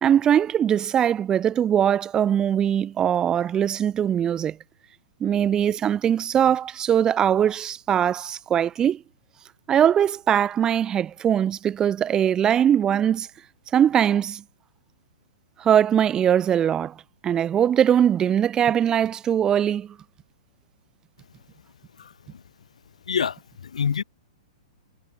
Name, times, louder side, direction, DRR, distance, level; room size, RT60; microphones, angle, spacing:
voice 1, 0.0-4.6 5.2-9.0 9.7-13.3 13.7-14.4 15.6-16.9 17.2-19.9, right 9 dB, 20° right, 0.4 m, -21 dB
voice 2, 22.0-22.4 23.1-24.0, left 7 dB, 75° left, 1.2 m, -27 dB
figure-of-eight pair, 115°, 4 cm